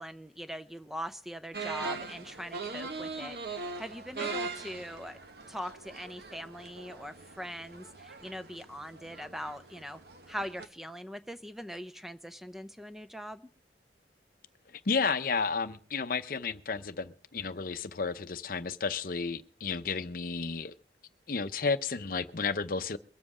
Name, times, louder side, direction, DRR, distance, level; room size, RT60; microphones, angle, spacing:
voice 1, 0.0-5.2 5.5-10.0 10.3-13.4, equal, ahead, 0.5 m, -41 dB
sound 1, 1.5-10.7, right 4 dB, 60° right, 1.2 m, -41 dB
voice 2, 14.9-20.7 21.3-23.0, left 5 dB, 55° left, 0.7 m, -32 dB
22.5 x 7.6 x 4.9 m
head